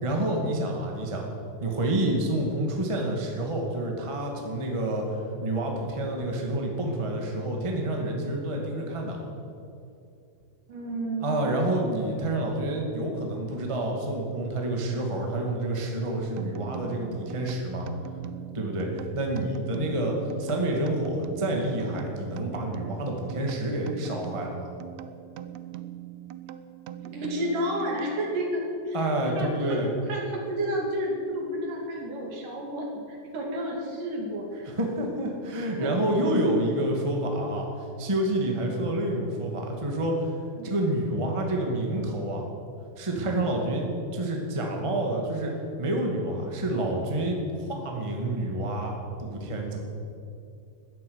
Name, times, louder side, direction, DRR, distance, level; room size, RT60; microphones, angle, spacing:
voice 1, 0.0-1.3 1.6-9.2 11.2-17.9 18.5-24.7 28.9-29.9 34.6-40.3 40.6-42.4 43.0-45.5 45.8-49.8, right 1 dB, 10° right, 0 dB, 1.5 m, -28 dB
voice 2, 10.7-11.4 27.1-29.1 29.4-29.8 30.1-34.7 35.8-35.9 40.6-41.1, equal, 65° right, 0 dB, 4.2 m, -31 dB
sound 1, 16.4-28.5, right 12 dB, 85° right, 1.6 m, -41 dB
14.0 x 10.5 x 9.7 m, 2.5 s
omnidirectional pair, 4.1 m